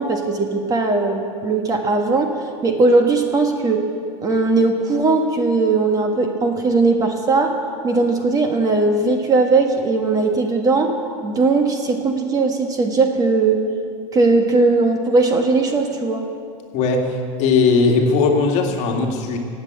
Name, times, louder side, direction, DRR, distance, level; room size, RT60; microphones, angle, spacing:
voice 1, 0.0-2.3 2.6-3.8 4.2-7.5 7.8-10.9 11.2-13.6 14.1-16.2, right 3 dB, 20° right, 4 dB, 1.3 m, -18 dB
voice 2, 16.7-19.4, left 4 dB, 45° left, 2 dB, 2.1 m, -18 dB
18.0 x 7.8 x 8.7 m, 2.3 s
supercardioid pair, 145°, 17 cm